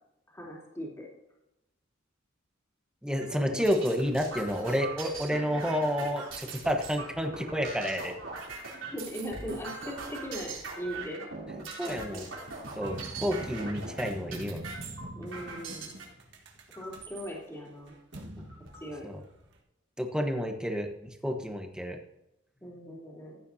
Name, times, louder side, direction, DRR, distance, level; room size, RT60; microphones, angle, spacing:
voice 1, 0.3-1.0 8.9-11.2 11.8-12.3 14.2-14.3 15.1-15.9 16.7-18.0 18.4-18.5 18.8-19.1 22.6-23.4, equal, 15° left, -4 dB, 3.1 m, -40 dB
voice 2, 3.0-8.1 11.5-12.3 12.8-14.6 19.0-19.2 20.0-22.0, equal, 5° right, 3 dB, 1.2 m, -30 dB
sound 1, 3.2-16.1 16.7-17.3 17.8-17.9 18.2-18.9, right 4 dB, 80° right, 3.4 m, -41 dB
sound 2, 12.7-19.6, right 1 dB, 60° right, 1.7 m, -44 dB
15.0 x 9.2 x 2.8 m, 0.90 s
head